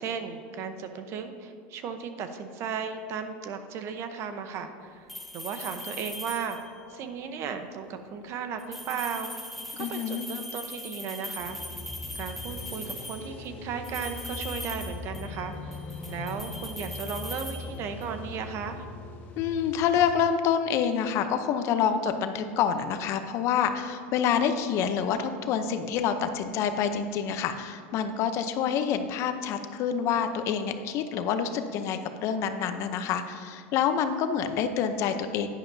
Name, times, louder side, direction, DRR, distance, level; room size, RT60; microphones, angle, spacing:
voice 1, 0.0-5.1 5.3-6.6 6.9-9.3 9.8-11.6 12.1-15.7 16.1-18.8, right 6 dB, 50° right, 8 dB, 0.9 m, -35 dB
sound 1, 5.1-6.8 8.6-13.3 13.8-15.4 15.7-18.2, left 1 dB, ahead, 1.3 m, -40 dB
voice 2, 9.8-10.3 19.4-35.5, left 7 dB, 50° left, 9 dB, 0.7 m, -27 dB
sound 2, 11.4-20.1, left 3 dB, 30° left, 1.6 m, -41 dB
11.0 x 10.0 x 2.7 m, 2.3 s
supercardioid pair, 115°, 6 cm